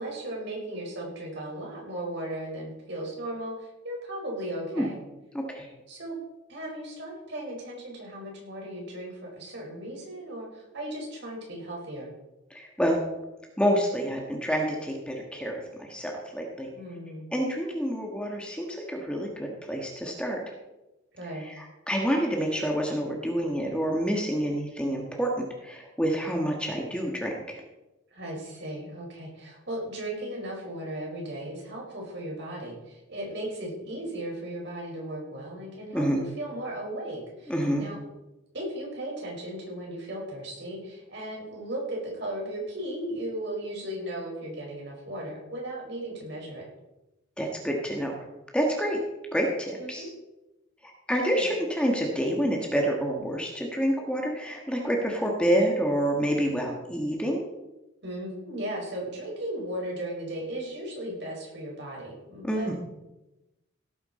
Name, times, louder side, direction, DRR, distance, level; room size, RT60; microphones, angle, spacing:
voice 1, 0.0-5.0 5.9-6.2 6.5-12.1 16.7-17.3 21.1-21.5 28.1-38.0 38.5-46.6 49.8-50.1 51.3-51.5 58.0-62.7, right 1 dB, 55° right, -1 dB, 5.1 m, -36 dB
voice 2, 5.3-5.7 12.5-13.0 13.6-16.7 17.3-20.5 21.3-27.6 35.9-36.2 37.5-37.8 47.4-48.2 48.5-49.0 49.3-50.0 51.1-57.4 62.4-62.7, equal, 5° left, 0 dB, 1.5 m, -28 dB
17.0 x 9.5 x 4.3 m, 0.99 s
head